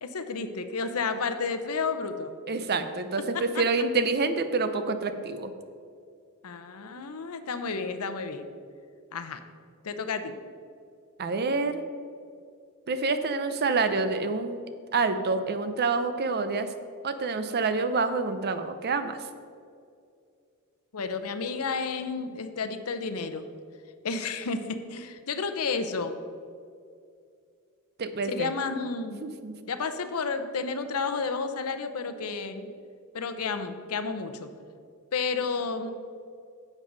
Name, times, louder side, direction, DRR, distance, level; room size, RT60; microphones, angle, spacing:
voice 1, 0.0-2.4 3.3-3.4 6.4-8.5 9.1-9.4 9.8-10.3 20.9-23.5 24.0-26.1 28.3-29.2 29.7-32.7 33.1-34.5 35.1-35.9, left 4 dB, 75° left, 9 dB, 0.7 m, -31 dB
voice 2, 2.5-5.5 11.2-11.8 12.9-14.6 14.9-16.7 17.0-19.3 28.0-28.8 29.2-29.6, right 4 dB, 45° right, 10 dB, 0.6 m, -27 dB
10.0 x 7.4 x 3.9 m, 2.3 s
head